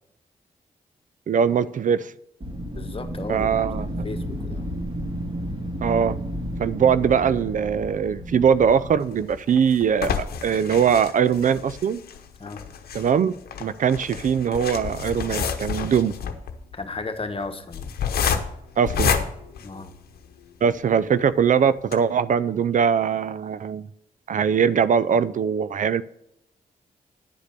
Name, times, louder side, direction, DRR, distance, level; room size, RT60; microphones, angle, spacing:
voice 1, 1.3-2.1 3.3-4.1 5.8-6.2 6.6-10.1 10.4-12.0 12.9-13.3 13.6-16.1 18.8-19.1 20.6-23.9 24.3-26.0, right 7 dB, 55° right, 16 dB, 0.4 m, -21 dB
Wind, 2.4-9.3, equal, 35° right, 3.0 m, -32 dB
voice 2, 2.7-3.6 4.0-4.8 12.4-12.6 16.7-17.9 19.6-20.0, left 3 dB, 35° left, 7 dB, 1.3 m, -34 dB
sound 1, 9.0-20.4 20.9-21.0 21.3-21.4 21.8-21.9, left 7 dB, 80° left, 0.9 m, -29 dB
10.5 x 5.0 x 6.6 m, 0.79 s
supercardioid pair, 50°, 16 cm